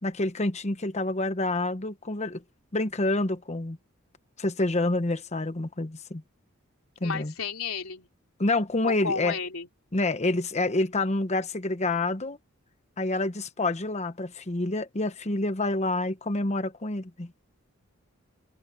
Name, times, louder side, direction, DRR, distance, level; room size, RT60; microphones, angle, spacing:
voice 1, 0.0-2.4 2.7-3.8 4.4-6.2 7.0-7.3 8.4-9.4 9.9-12.4 13.0-17.3, left 2 dB, 30° left, 1.1 m, -28 dB
voice 2, 7.0-8.1 8.8-9.7, left 5 dB, 80° left, 3.5 m, -33 dB
head